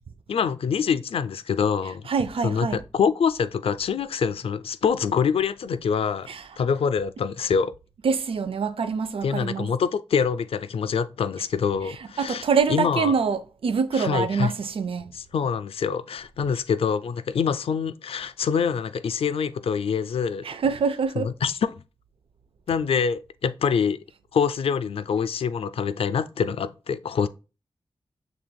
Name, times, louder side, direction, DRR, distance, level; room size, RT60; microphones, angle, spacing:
voice 1, 0.3-2.1 2.4-6.3 6.6-7.7 9.2-13.1 13.9-14.5 15.3-20.4 21.2-21.7 22.7-24.0 24.3-27.3, left 6 dB, 85° left, 0.4 m, -25 dB
voice 2, 2.1-2.8 6.3-6.5 8.0-9.7 11.9-15.1 20.4-21.3, right 5 dB, 75° right, 0.5 m, -25 dB
6.8 x 3.3 x 2.2 m
wide cardioid pair, 105°, 10 cm